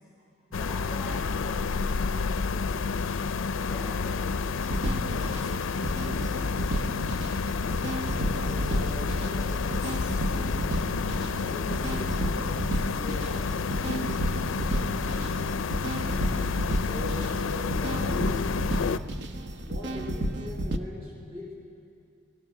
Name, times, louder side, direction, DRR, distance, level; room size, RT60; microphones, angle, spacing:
sound 1, 0.5-19.0, left 5 dB, 80° left, 0.5 m, -30 dB
voice 1, 0.5-2.9 3.6-6.9, equal, 5° left, -7 dB, 5.1 m, -45 dB
sound 2, 4.6-20.8, right 1 dB, 55° right, 1.0 m, -32 dB
voice 2, 7.9-10.6 11.3-15.5 16.1-16.5 16.9-18.5 19.5-21.5, left 2 dB, 30° right, -3 dB, 4.1 m, -41 dB
30.0 x 19.0 x 5.8 m, 2.5 s
head